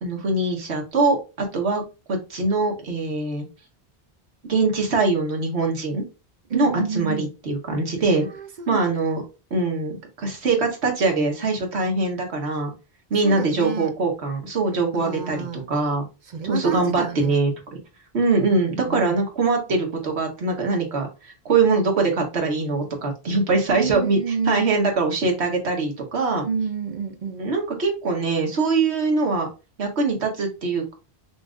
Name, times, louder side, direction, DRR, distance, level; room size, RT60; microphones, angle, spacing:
voice 1, 0.0-1.8 2.1-3.4 4.5-6.0 6.5-8.3 8.7-9.2 9.5-12.7 13.1-15.4 15.7-16.0 16.4-17.5 18.1-21.1 21.4-24.2 24.5-26.5 27.4-29.5 29.8-30.9, right 3 dB, 90° right, 1.4 m, -22 dB
voice 2, 6.5-7.3 8.3-8.8 13.2-13.9 14.9-15.7 16.3-17.4 18.5-19.2 23.7-24.6 26.3-27.5, right 6 dB, 55° right, 0.6 m, -29 dB
5.8 x 2.4 x 2.4 m
omnidirectional pair, 1.1 m